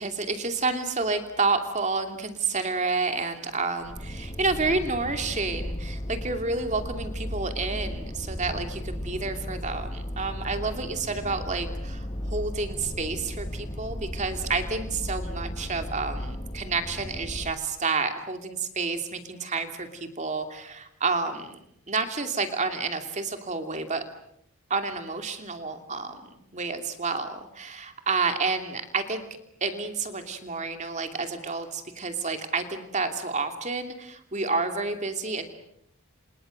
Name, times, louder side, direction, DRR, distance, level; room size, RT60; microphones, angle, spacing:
voice 1, 0.0-21.6 21.9-24.0 24.7-29.2 29.6-35.5, right 4 dB, 30° right, 6 dB, 2.7 m, -30 dB
sound 1, 3.8-17.5, equal, 25° left, 2.1 m, -35 dB
28.5 x 28.0 x 6.6 m, 0.77 s
head